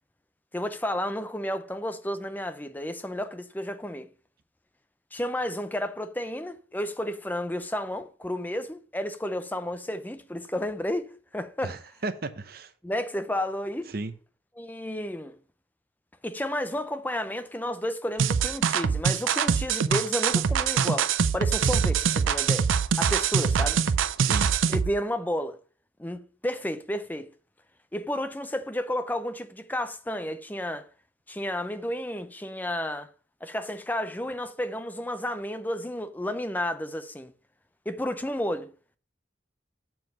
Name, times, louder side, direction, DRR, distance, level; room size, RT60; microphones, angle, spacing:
voice 1, 0.5-4.1 5.1-11.8 12.8-13.9 14.6-15.4 16.2-22.7 23.0-23.8 24.7-25.6 26.0-27.3 27.9-30.8 31.3-33.1 33.4-37.3 37.9-38.7, left 1 dB, 10° left, 0.6 m, -32 dB
voice 2, 11.6-12.7 13.9-14.1 24.2-24.5, right 2 dB, 50° right, 0.7 m, -34 dB
sound 1, 18.2-24.9, right 7 dB, 90° right, 0.5 m, -24 dB
7.5 x 4.7 x 6.2 m
head